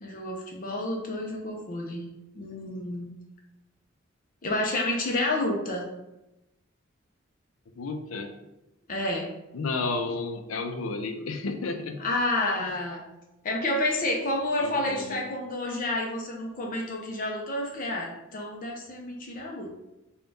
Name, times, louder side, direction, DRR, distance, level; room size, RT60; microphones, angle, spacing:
voice 1, 0.0-2.1 2.3-3.1 4.4-5.9 8.9-9.3 12.0-13.0 13.4-19.7, left 1 dB, 45° left, 0 dB, 0.6 m, -29 dB
voice 2, 7.8-8.3 9.5-12.0 14.6-15.2, left 3 dB, 85° left, 6 dB, 0.5 m, -32 dB
3.6 x 2.3 x 3.9 m, 0.94 s
head